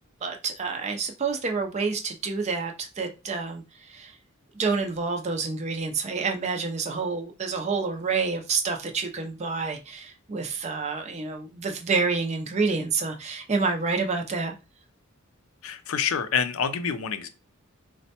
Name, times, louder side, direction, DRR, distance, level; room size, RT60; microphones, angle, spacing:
voice 1, 0.2-4.1 4.5-14.5, right 4 dB, 30° right, 4 dB, 0.4 m, -28 dB
voice 2, 15.6-17.3, left 6 dB, 70° left, 10 dB, 0.4 m, -27 dB
4.1 x 2.1 x 2.7 m, 0.28 s
head